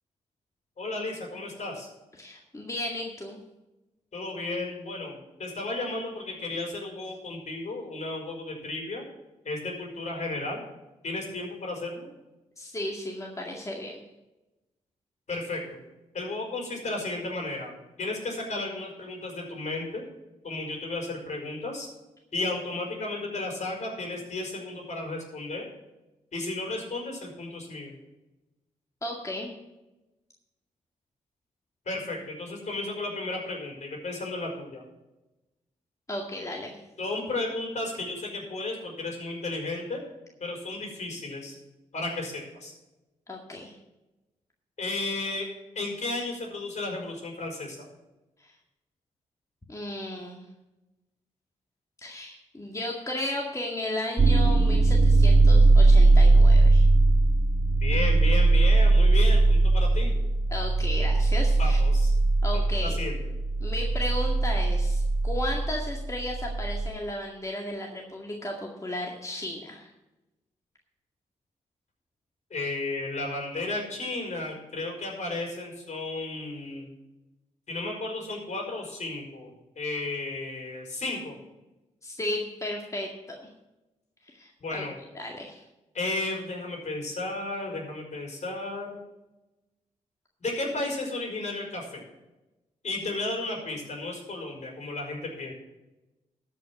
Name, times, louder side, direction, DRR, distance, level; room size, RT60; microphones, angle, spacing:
voice 1, 0.8-1.9 4.1-9.0 9.4-10.6 11.0-12.1 15.3-15.8 16.1-20.0 20.4-21.9 22.3-25.6 26.3-27.9 31.8-34.8 37.0-40.0 40.4-41.5 41.9-42.7 44.8-45.5 45.7-47.9 57.7-60.1 61.6-62.1 62.5-63.2 72.5-76.9 77.7-81.4 84.6-85.0 85.9-89.0 90.4-92.0 92.8-95.5, left 2 dB, 55° left, 0 dB, 4.9 m, -33 dB
voice 2, 2.2-3.4 12.6-14.0 29.0-29.5 36.1-36.8 43.3-43.7 48.4-48.5 49.7-50.4 52.0-56.9 60.5-61.8 62.4-63.0 63.6-69.9 82.0-83.4 84.2-84.5 85.1-85.6, left 1 dB, 20° left, 0 dB, 2.0 m, -34 dB
sound 1, 54.2-66.9, right 2 dB, 35° right, 2.5 m, -20 dB
13.0 x 5.8 x 7.5 m, 1.0 s
supercardioid pair, 45°, 14 cm